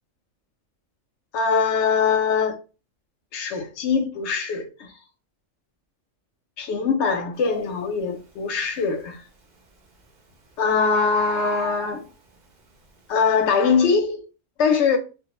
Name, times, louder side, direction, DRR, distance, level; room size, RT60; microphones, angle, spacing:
voice 1, 1.3-2.5 3.3-4.9 6.6-9.2 10.6-12.1 13.1-14.3 14.6-15.0, left 5 dB, 70° left, 0.8 m, -22 dB
Bird, 7.4-7.6 8.1-8.6 9.6-9.7 10.0-10.1 10.3-10.4 10.6-12.3 12.9-13.0, right 2 dB, 55° right, 0.5 m, -34 dB
2.4 x 2.0 x 2.8 m
omnidirectional pair, 1.4 m